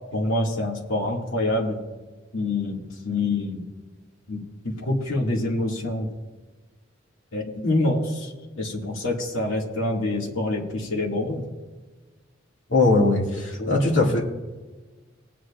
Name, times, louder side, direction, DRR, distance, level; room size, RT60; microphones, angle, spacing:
voice 1, 0.1-1.8 2.3-3.6 4.3-6.1 7.3-11.4 13.6-13.8, left 2 dB, 90° left, -2 dB, 2.2 m, -26 dB
voice 2, 12.7-14.2, left 2 dB, 65° left, -1 dB, 2.3 m, -20 dB
19.5 x 9.4 x 2.5 m, 1.3 s
head